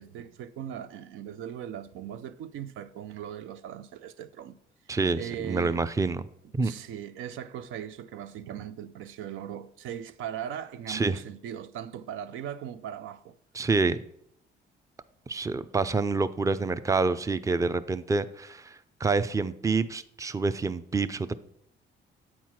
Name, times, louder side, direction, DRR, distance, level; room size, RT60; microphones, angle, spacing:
voice 1, 0.0-4.6 5.1-5.8 6.6-13.4, right 9 dB, 90° right, 0.5 m, -39 dB
voice 2, 4.9-6.2 6.5-6.7 10.9-11.2 13.5-14.0 15.3-21.3, right 4 dB, 15° right, 0.5 m, -27 dB
8.5 x 4.6 x 5.8 m
cardioid pair, 90°, 20 cm